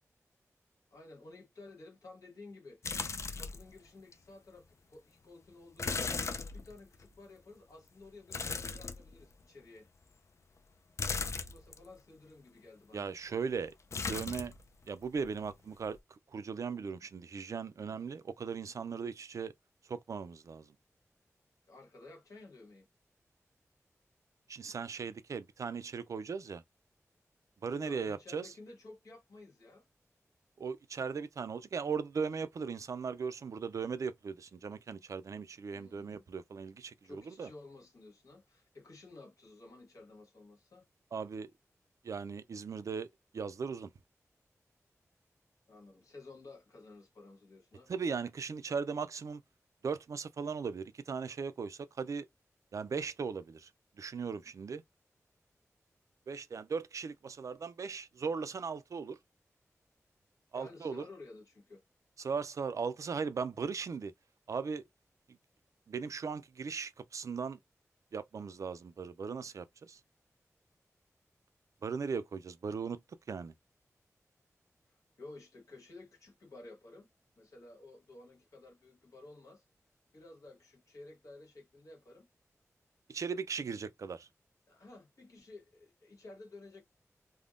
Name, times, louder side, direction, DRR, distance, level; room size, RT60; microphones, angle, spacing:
voice 1, 0.9-2.9 3.3-9.9 11.3-13.1 21.7-22.9 27.8-29.9 35.7-36.3 37.0-40.9 45.7-47.9 60.5-61.8 75.2-77.1 77.4-79.6 80.1-82.3 84.7-86.8, left 2 dB, 85° left, 1.3 m, -53 dB
sound 1, 2.8-3.7 4.1-4.2 5.8-7.1 8.3-9.4 11.0-11.8 13.9-14.6 14.9-15.5 15.8-16.0, left 4 dB, 60° left, 0.4 m, -37 dB
voice 2, 12.9-13.7 14.1-14.5 14.9-16.0 16.3-19.5 19.9-20.7 24.5-26.6 27.6-28.5 30.6-37.5 41.1-41.5 42.0-43.1 43.3-43.9 47.9-49.4 49.8-52.3 52.7-53.7 54.0-54.8 56.3-59.2 60.5-61.0 62.2-64.1 64.5-64.8 65.9-67.6 68.1-70.0 71.8-73.0 73.3-73.5 83.1-84.3, right 5 dB, 70° right, 0.3 m, -38 dB
3.4 x 2.1 x 2.4 m
wide cardioid pair, 115°, 6 cm